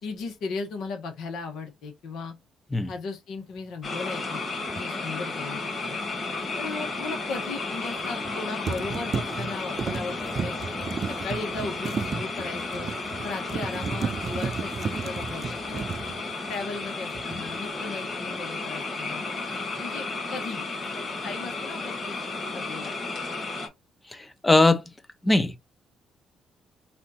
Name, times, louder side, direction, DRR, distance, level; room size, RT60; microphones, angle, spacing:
voice 1, 0.0-2.3 2.9-4.4 4.7-6.0 6.6-10.6 11.2-12.9 13.2-15.9 16.5-19.2 19.8-20.0 20.3-20.6 20.9-22.2 22.5-23.0, left 4 dB, 80° left, 1.3 m, -36 dB
sound 1, 3.8-23.7, left 3 dB, 40° left, 2.3 m, -33 dB
sound 2, 4.7-4.9 8.0-8.3 8.7-16.8 17.1-17.6, right 6 dB, 45° right, 0.3 m, -33 dB
voice 2, 24.1-24.8 25.2-25.6, left 2 dB, 15° left, 0.8 m, -21 dB
4.2 x 2.6 x 4.2 m
cardioid pair, 90°, 0 cm